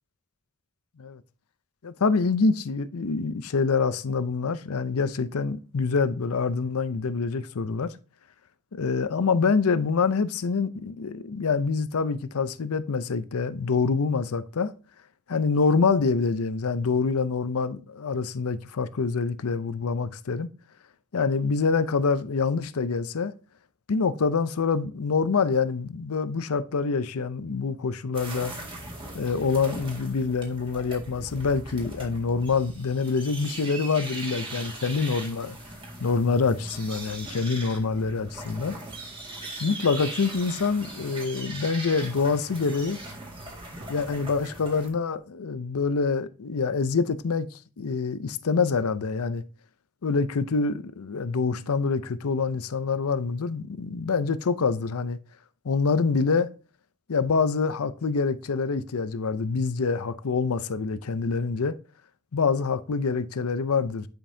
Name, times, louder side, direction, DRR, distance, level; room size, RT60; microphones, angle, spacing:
voice 1, 1.8-8.0 8.7-14.7 15.3-20.5 21.1-23.3 23.9-28.5 29.1-35.6 36.0-38.8 39.6-43.0 43.9-49.4 50.0-55.2 55.6-56.5 57.1-61.8 62.3-64.1, left 4 dB, 75° left, 0.6 m, -26 dB
sound 1, 28.1-44.9, right 2 dB, 25° right, 1.9 m, -39 dB
10.0 x 5.3 x 2.7 m
head